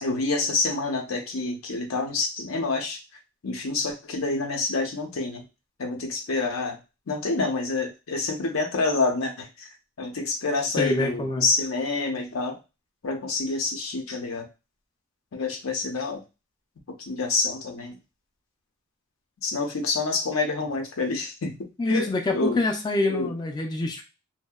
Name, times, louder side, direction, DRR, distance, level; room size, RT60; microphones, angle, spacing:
voice 1, 0.0-3.0 3.4-5.4 5.8-6.8 7.1-9.7 10.0-12.6 13.0-14.4 15.3-16.2 17.0-18.0 19.4-21.6 21.9-22.6 23.1-23.3, left 3 dB, 80° left, 3 dB, 0.6 m, -27 dB
voice 2, 10.8-11.5 21.8-24.0, left 2 dB, 20° left, 2 dB, 0.3 m, -26 dB
2.6 x 2.1 x 2.2 m, 0.28 s
head